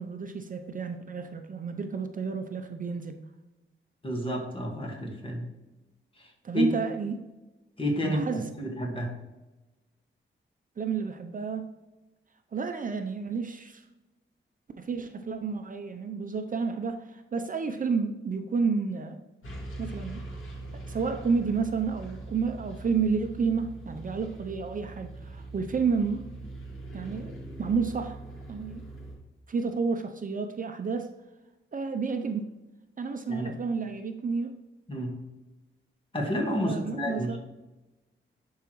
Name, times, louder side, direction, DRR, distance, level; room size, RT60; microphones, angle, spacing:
voice 1, 0.0-3.2 6.4-7.2 8.0-8.5 10.8-11.7 12.5-13.8 14.8-19.2 19.8-20.2 20.7-26.3 26.9-28.2 28.5-28.8 29.5-31.1 31.7-32.4 33.0-34.5 36.6-37.4, right 5 dB, 40° right, 6 dB, 0.6 m, -30 dB
voice 2, 4.0-5.4 6.5-6.7 7.8-8.2 8.6-9.1 33.3-33.5 34.9-35.2 36.1-37.4, equal, 25° left, 1 dB, 1.7 m, -30 dB
sound 1, 19.4-29.1, right 2 dB, 80° left, 2.3 m, -42 dB
11.0 x 4.7 x 3.1 m, 1.1 s
cardioid pair, 95°, 20 cm